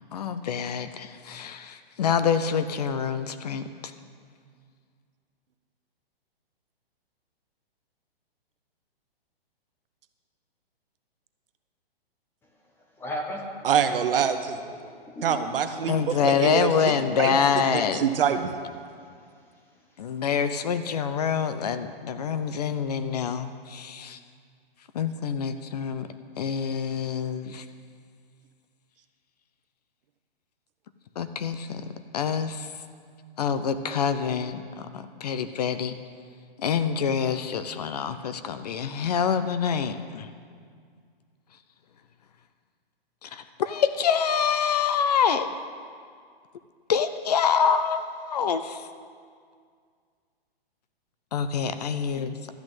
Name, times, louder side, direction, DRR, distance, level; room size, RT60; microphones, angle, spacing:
voice 1, 0.1-3.6 15.8-18.1 20.0-24.2 24.9-26.1 26.4-27.6 31.2-31.8 32.1-32.7 33.4-36.0 36.6-40.3 43.2-45.5 46.9-48.8 51.3-52.4, left 7 dB, 40° left, 11 dB, 0.5 m, -26 dB
voice 2, 12.9-13.5 14.6-16.4 16.9-17.3 18.9-20.2, left 1 dB, 5° left, 1 dB, 0.7 m, -40 dB
voice 3, 13.6-14.6 15.2-17.4 17.9-18.5, right 8 dB, 65° right, 8 dB, 1.0 m, -25 dB
12.5 x 6.2 x 8.8 m, 2.1 s
hypercardioid pair, 160°, 30 cm